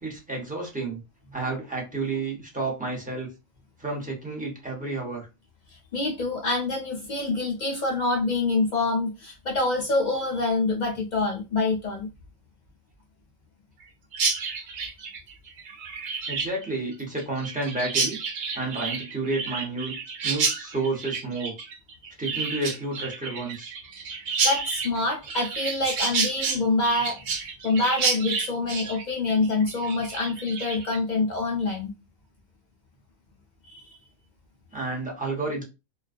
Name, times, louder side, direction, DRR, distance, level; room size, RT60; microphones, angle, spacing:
voice 1, 0.0-1.0 1.3-3.3 3.8-5.3 16.3-18.2 18.5-19.9 20.2-21.5 22.2-23.7 34.7-35.6, right 3 dB, 10° right, -2 dB, 0.4 m, -30 dB
voice 2, 5.9-12.1 24.4-31.9 33.7-33.8, left 3 dB, 75° left, 0 dB, 0.4 m, -26 dB
Chirp tweet, 14.1-31.0, right 5 dB, 65° right, 0.8 m, -30 dB
2.3 x 2.2 x 2.4 m, 0.27 s
omnidirectional pair, 1.4 m